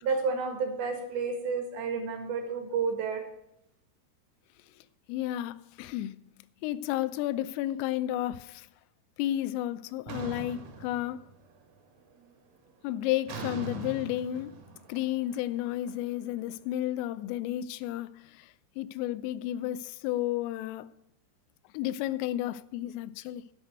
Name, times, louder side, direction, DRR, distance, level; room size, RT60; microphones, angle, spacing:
voice 1, 0.0-3.2, right 5 dB, 60° right, 3.1 m, -31 dB
voice 2, 5.1-6.2 6.6-8.7 9.2-11.2 12.8-14.6 14.9-18.1 18.8-20.9 21.7-23.4, left 13 dB, 85° left, 3.2 m, -32 dB
sound 1, 10.1-11.6 12.0-12.4 13.3-16.3, right 3 dB, 85° right, 4.4 m, -41 dB
10.5 x 6.5 x 8.0 m
omnidirectional pair, 5.8 m